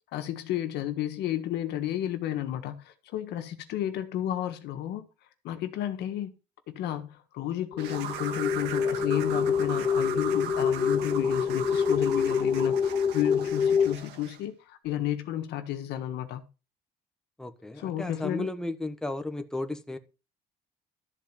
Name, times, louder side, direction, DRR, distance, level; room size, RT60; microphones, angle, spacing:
voice 1, 0.1-5.1 5.4-6.3 6.7-16.4 17.8-18.5, left 12 dB, 80° left, 1.5 m, -32 dB
sound 1, 7.7-14.0, left 6 dB, 30° left, 1.4 m, -26 dB
sound 2, 7.8-14.4, right 9 dB, 85° right, 1.5 m, -38 dB
voice 2, 17.4-20.0, left 2 dB, 5° left, 1.2 m, -34 dB
13.0 x 4.4 x 7.4 m
cardioid pair, 110°, 17 cm